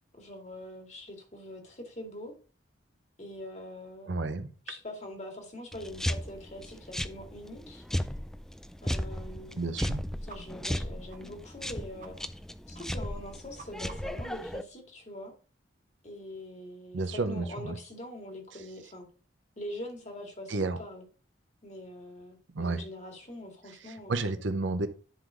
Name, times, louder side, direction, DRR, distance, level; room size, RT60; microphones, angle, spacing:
voice 1, 0.2-2.3 3.2-4.1 4.7-7.8 8.8-9.7 10.3-12.2 12.7-15.3 16.0-19.1 19.6-21.0 21.6-24.4, left 1 dB, 35° left, 2 dB, 2.3 m, -43 dB
voice 2, 4.1-4.5 9.6-10.0 16.9-17.8 20.5-20.8 22.5-22.8 23.7-24.9, right 3 dB, 80° right, 10 dB, 0.8 m, -31 dB
sound 1, 5.7-14.6, equal, 5° left, 0.4 m, -36 dB
sound 2, 10.3-10.4 10.7-10.8 11.1-11.2 11.6-11.7 12.0-12.1 12.4-12.5 12.8-12.9 13.2-14.3, right 5 dB, 45° right, 1.1 m, -50 dB
10.5 x 3.9 x 5.0 m, 0.37 s
head